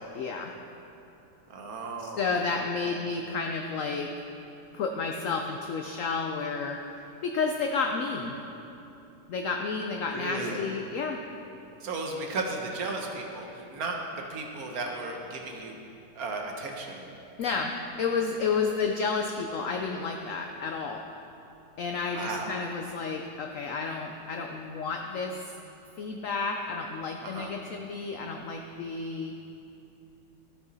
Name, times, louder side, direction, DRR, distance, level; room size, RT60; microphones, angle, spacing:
voice 1, 0.1-0.5 2.0-4.1 4.7-6.8 7.2-8.4 9.3-11.2 17.4-21.0 21.8-25.4 26.0-29.3, left 4 dB, 85° left, 3 dB, 0.7 m, -31 dB
voice 2, 1.5-2.2 2.8-3.0 10.0-10.7 11.8-15.8 16.1-17.1 22.1-22.5 27.2-27.5, right 3 dB, 60° right, 1 dB, 1.2 m, -35 dB
13.0 x 6.0 x 4.0 m, 2.8 s
omnidirectional pair, 2.0 m